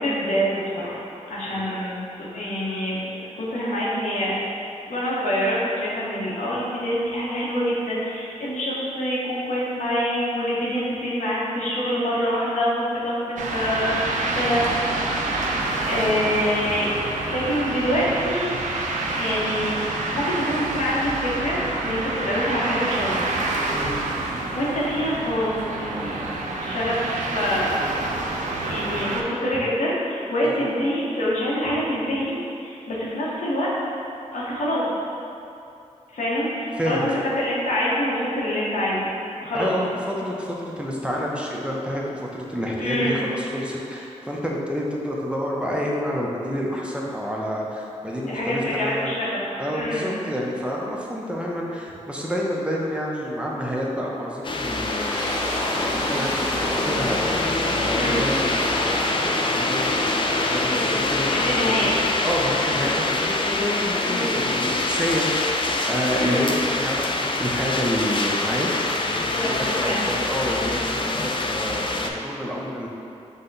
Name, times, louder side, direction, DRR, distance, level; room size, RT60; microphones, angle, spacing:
voice 1, 0.0-4.4 4.9-15.2 15.8-18.5 19.1-19.8 20.1-23.3 24.2-26.3 26.6-27.9 28.6-33.7 34.3-34.9 36.1-39.1 39.4-39.7 42.8-43.1 48.3-49.4 49.7-50.1 57.9-58.2 61.2-61.9 62.7-63.0 64.1-64.3 66.1-66.4 69.3-70.1, equal, 85° left, -7 dB, 1.0 m, -26 dB
sound 1, 13.4-29.2, right 2 dB, 90° right, 0.4 m, -27 dB
voice 2, 39.5-49.2 49.6-55.3 55.7-68.7 69.1-72.9, equal, 10° right, -3 dB, 0.6 m, -29 dB
sound 2, 54.4-72.1, left 2 dB, 40° left, 0.4 m, -25 dB
sound 3, 54.4-65.4, equal, 20° left, 1.2 m, -31 dB
5.5 x 2.2 x 3.9 m, 2.7 s
cardioid pair, 60°, 12 cm